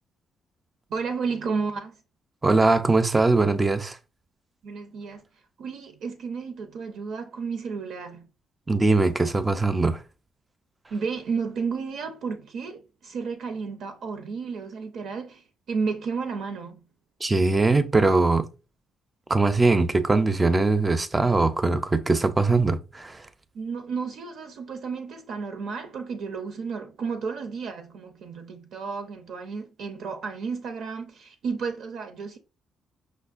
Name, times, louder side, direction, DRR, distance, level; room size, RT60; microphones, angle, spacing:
voice 1, 0.9-2.0 4.6-5.2 5.6-8.3 10.9-16.8 23.5-32.4, right 5 dB, 75° right, 0.5 m, -32 dB
voice 2, 2.4-4.0 8.7-10.0 17.2-18.5 19.3-23.2, right 3 dB, 20° right, 0.4 m, -21 dB
5.4 x 2.1 x 2.4 m
cardioid pair, 90°, 0 cm